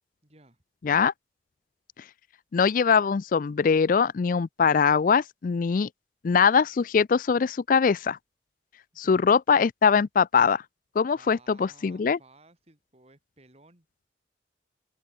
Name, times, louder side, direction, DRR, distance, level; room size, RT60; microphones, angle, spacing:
voice 1, 0.2-0.6 9.0-9.2 11.1-13.9, right 2 dB, 35° right, 4.5 m, -57 dB
voice 2, 2.5-5.9 6.2-8.2 9.0-10.6 11.0-12.2, left 6 dB, 50° left, 0.4 m, -22 dB
open air
head